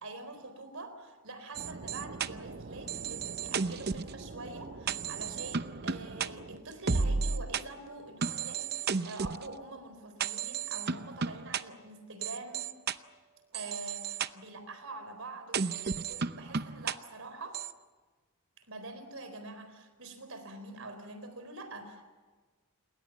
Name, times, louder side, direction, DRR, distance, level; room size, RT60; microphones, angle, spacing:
voice 1, 0.0-12.7 13.5-17.6 18.6-22.1, right 2 dB, 65° right, 9 dB, 4.1 m, -45 dB
sound 1, 1.5-7.6 8.2-9.5 10.2-11.6 12.2-12.9 13.5-14.3 15.5-16.9 17.5-17.7, right 5 dB, 45° right, 0.7 m, -34 dB
29.0 x 21.0 x 7.3 m, 1.4 s
head